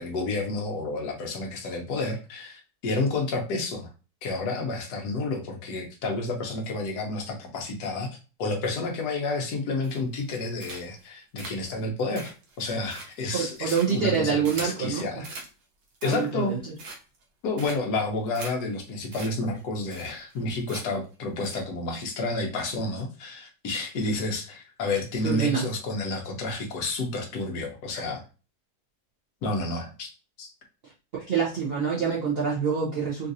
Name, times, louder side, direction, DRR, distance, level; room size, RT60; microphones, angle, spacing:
voice 1, 0.0-3.9 4.2-8.1 8.4-12.3 12.6-14.4 14.6-15.3 16.0-16.5 17.4-28.2 29.4-30.1 30.4-30.5, left 2 dB, 75° left, 2 dB, 1.4 m, -30 dB
sound 1, 9.8-10.3 10.6-11.0 11.4-14.8 15.2-15.5 15.9-16.4 16.8-17.2 17.6-18.0 18.3-18.5 18.8-18.9 19.1-19.3 19.6-19.7 19.9-20.4 20.7-21.1 21.4-21.6, right 3 dB, 65° right, 1.2 m, -41 dB
voice 2, 13.3-15.2 16.0-16.7 25.2-25.6 31.1-33.3, right 6 dB, 50° right, -5 dB, 0.7 m, -26 dB
3.9 x 2.5 x 2.6 m, 0.33 s
omnidirectional pair, 1.7 m